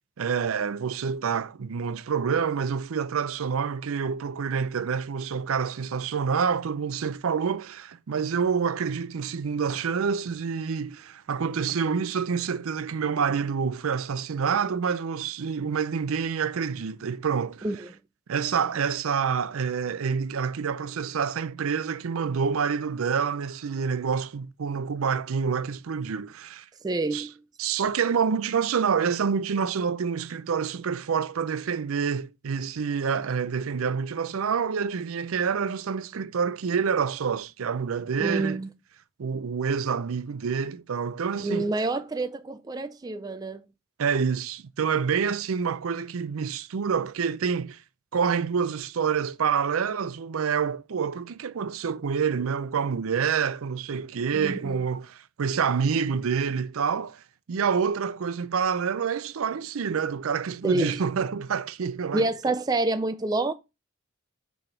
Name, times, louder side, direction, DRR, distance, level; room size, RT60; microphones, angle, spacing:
voice 1, 0.2-17.7 18.3-26.6 27.1-27.3 27.6-38.6 39.2-41.7 44.0-47.8 48.1-57.2 57.5-62.3, right 6 dB, 75° right, 0.5 m, -27 dB
voice 2, 26.8-27.3 38.2-38.7 41.4-43.6 54.3-54.8 60.6-61.0 62.1-63.5, right 2 dB, 20° right, 0.3 m, -27 dB
6.2 x 3.4 x 5.6 m
head